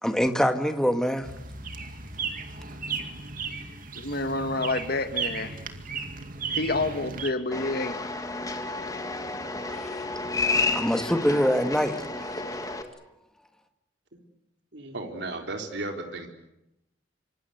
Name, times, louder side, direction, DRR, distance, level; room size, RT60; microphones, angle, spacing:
voice 1, 0.0-1.3 9.7-9.9 10.7-12.0, equal, 5° left, 1.8 m, -24 dB
sound 1, 1.2-7.3, right 5 dB, 50° right, 2.3 m, -35 dB
voice 2, 4.0-5.6 6.5-8.0, left 2 dB, 55° left, 1.8 m, -28 dB
sound 2, 7.5-12.8, left 3 dB, 20° left, 2.2 m, -31 dB
voice 3, 14.7-16.3, right 2 dB, 65° right, 4.1 m, -35 dB
26.5 x 25.5 x 8.0 m
head